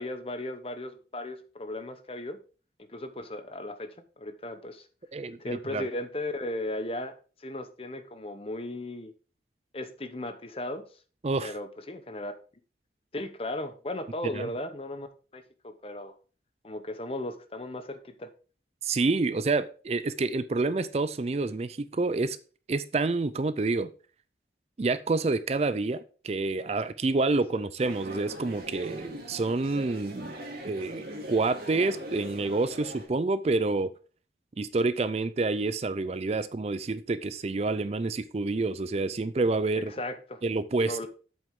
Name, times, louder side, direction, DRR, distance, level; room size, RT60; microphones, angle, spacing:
voice 1, 0.0-2.4 2.8-4.9 5.4-7.1 7.4-9.1 9.7-10.8 11.4-12.3 13.1-15.1 15.3-16.1 16.6-18.3 27.5-27.6 39.7-40.4 40.9-41.1, left 1 dB, 30° left, 10 dB, 0.9 m, -36 dB
voice 2, 5.1-5.8 11.2-11.5 14.3-14.4 18.8-22.4 22.7-23.9 24.8-30.3 30.6-33.9 34.6-39.9 40.4-41.1, right 3 dB, 35° right, 14 dB, 0.4 m, -28 dB
sound 1, 27.8-33.1, equal, 55° right, 2.5 m, -41 dB
7.9 x 7.7 x 3.7 m, 0.37 s
head